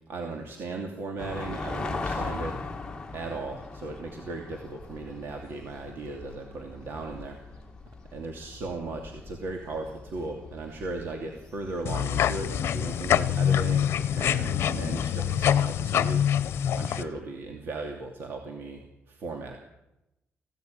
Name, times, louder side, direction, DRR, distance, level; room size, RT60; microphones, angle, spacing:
voice 1, 0.1-2.9 3.1-7.6 8.1-16.2 16.7-19.6, right 3 dB, 60° right, 3 dB, 2.7 m, -37 dB
sound 1, 1.2-17.2, left 3 dB, 15° left, 2.3 m, -41 dB
sound 2, 11.9-17.0, left 9 dB, 75° left, 0.9 m, -25 dB
19.5 x 16.5 x 9.2 m, 0.92 s
cardioid pair, 140°, 4 cm